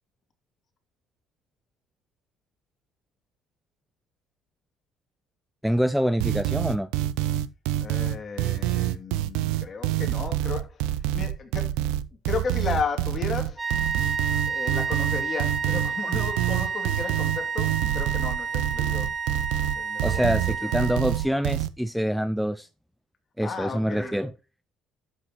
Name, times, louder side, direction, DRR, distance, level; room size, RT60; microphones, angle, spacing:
voice 1, 5.6-6.9 20.0-22.7 23.4-24.3, equal, ahead, 0.5 m, -25 dB
sound 1, 6.2-21.7, right 14 dB, 85° right, 0.5 m, -26 dB
voice 2, 7.8-11.9 12.2-13.7 14.5-19.1 19.7-20.3 20.6-20.8 23.4-24.2, left 5 dB, 40° left, 2.6 m, -34 dB
sound 2, 13.6-21.4, right 6 dB, 20° right, 1.7 m, -31 dB
11.0 x 8.1 x 3.0 m
supercardioid pair, 90°, 0 cm